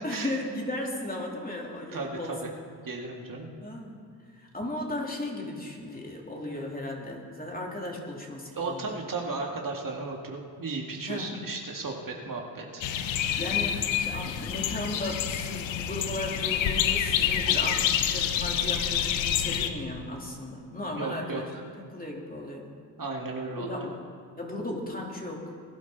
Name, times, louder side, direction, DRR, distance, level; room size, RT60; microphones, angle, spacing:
voice 1, 0.0-2.4 3.6-4.0 4.4-9.0 11.0-11.3 13.4-21.5 21.9-22.7 23.5-24.0 24.4-25.5, left 1 dB, 20° left, -1 dB, 3.4 m, -36 dB
voice 2, 1.9-2.5 2.8-3.5 8.5-12.8 20.9-21.6 23.0-23.9, right 3 dB, 45° right, 0 dB, 2.2 m, -35 dB
sound 1, 12.8-19.7, left 9 dB, 90° left, 0.9 m, -27 dB
21.0 x 11.5 x 4.0 m, 2.1 s
supercardioid pair, 60°, 44 cm